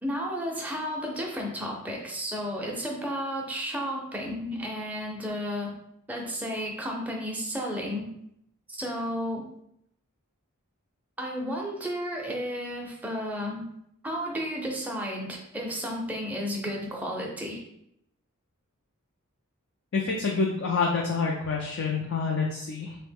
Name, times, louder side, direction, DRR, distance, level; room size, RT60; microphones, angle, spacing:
voice 1, 0.0-5.7 6.1-8.1 8.7-9.4 11.2-13.6 14.0-17.6, equal, 5° right, -1 dB, 0.5 m, -32 dB
voice 2, 19.9-23.0, left 4 dB, 55° left, -1 dB, 0.4 m, -27 dB
3.2 x 2.1 x 3.4 m, 0.76 s
head